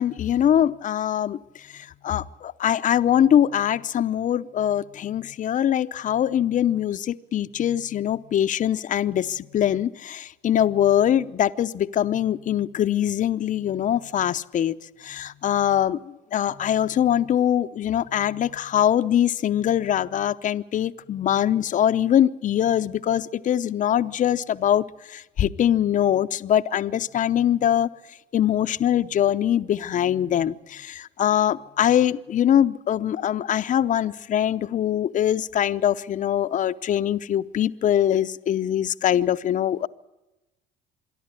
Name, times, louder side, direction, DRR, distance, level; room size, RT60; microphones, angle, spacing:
voice 1, 0.0-27.9 28.3-39.9, left 10 dB, 40° left, 12 dB, 0.7 m, -23 dB
26.5 x 11.0 x 9.7 m, 1.0 s
supercardioid pair, 90°, 19 cm